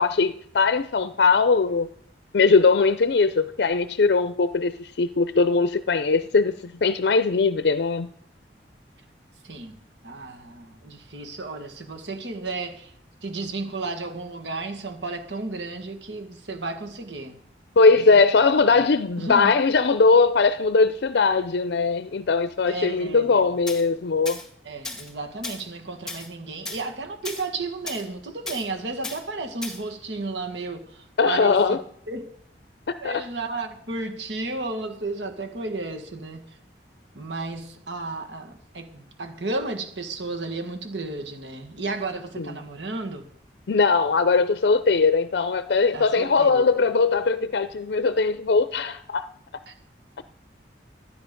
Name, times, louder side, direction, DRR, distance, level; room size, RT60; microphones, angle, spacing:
voice 1, 0.0-1.9 2.3-8.1 17.8-24.4 31.2-31.8 32.9-33.2 42.4-42.5 43.7-49.2, left 4 dB, 70° left, 0.5 m, -20 dB
voice 2, 9.4-12.9 13.2-17.4 17.9-18.2 18.7-18.9 19.2-19.5 22.6-23.5 24.6-31.8 32.1-32.3 33.0-36.5 37.1-43.3 45.9-46.7 49.7-49.8, right 3 dB, 85° right, 1.7 m, -33 dB
Tools, 23.7-23.8 24.3-24.5 24.8-25.1 25.4-25.6 26.1-26.3 26.6-26.9 27.2-27.5 27.9-28.0 28.5-28.7 29.0-29.2 29.6-29.8, left 2 dB, 5° left, 1.6 m, -35 dB
13.0 x 9.4 x 5.2 m
head